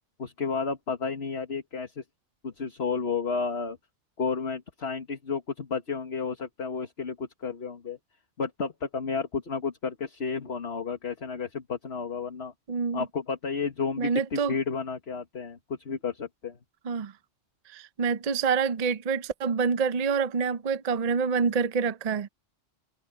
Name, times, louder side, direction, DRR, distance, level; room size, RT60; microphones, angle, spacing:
voice 1, 0.2-2.0 2.4-3.8 4.2-8.0 8.4-12.5 12.9-15.6 15.9-16.6, left 5 dB, 55° left, 1.8 m, -32 dB
voice 2, 12.7-13.0 14.0-14.6 16.8-17.1 17.7-22.3, right 5 dB, 45° right, 0.6 m, -27 dB
omnidirectional pair, 1.3 m